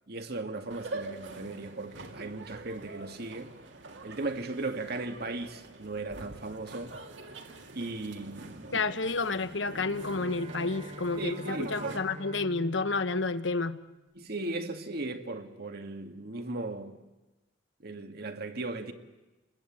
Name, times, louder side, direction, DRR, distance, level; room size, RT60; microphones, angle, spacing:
voice 1, 0.1-3.5 4.0-7.0 7.7-8.8 11.2-12.0 14.1-17.0 17.8-18.9, right 2 dB, 60° right, 2.2 m, -37 dB
sound 1, 0.7-12.0, right 2 dB, 75° right, 2.9 m, -45 dB
voice 2, 8.7-13.8, left 3 dB, 80° left, 1.2 m, -30 dB
Bowed string instrument, 9.6-14.3, equal, 30° right, 3.9 m, -46 dB
30.0 x 21.0 x 8.8 m
head